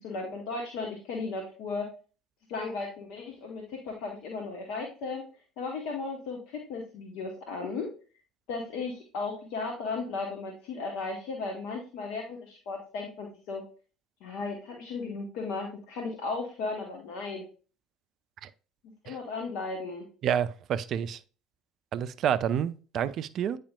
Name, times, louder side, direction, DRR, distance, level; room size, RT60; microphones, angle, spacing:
voice 1, 0.0-1.9 2.5-5.2 5.6-7.9 8.5-13.6 14.2-17.4 19.0-20.1, left 4 dB, 60° left, 1.0 m, -35 dB
voice 2, 20.2-21.2 21.9-23.6, right 9 dB, 45° right, 0.4 m, -29 dB
8.6 x 4.9 x 2.2 m
figure-of-eight pair, 60°, 0 cm